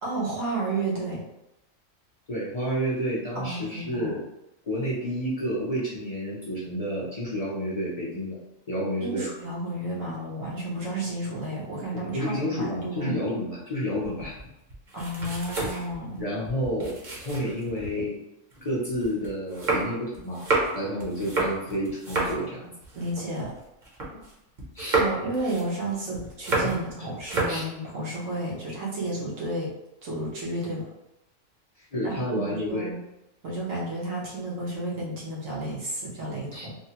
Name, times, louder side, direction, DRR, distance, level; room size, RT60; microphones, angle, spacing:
voice 1, 0.0-1.2 3.3-4.1 9.0-13.2 14.9-16.2 20.9-21.0 22.9-23.5 24.9-29.7 30.0-30.9 32.0-33.0 33.4-36.8, right 1 dB, 80° right, -5 dB, 1.4 m, -32 dB
voice 2, 2.3-4.2 4.7-8.4 8.7-9.3 11.9-14.4 16.2-18.2 18.6-20.4 20.7-22.7 24.7-25.0 26.6-26.7 27.5-27.6 31.9-32.9 36.5-36.7, equal, 40° left, -6 dB, 0.6 m, -30 dB
sound 1, 14.0-18.1 18.5-24.3 24.6-26.9 27.2-27.7, right 3 dB, 45° right, 0.8 m, -30 dB
3.5 x 2.1 x 2.8 m, 0.91 s
omnidirectional pair, 1.3 m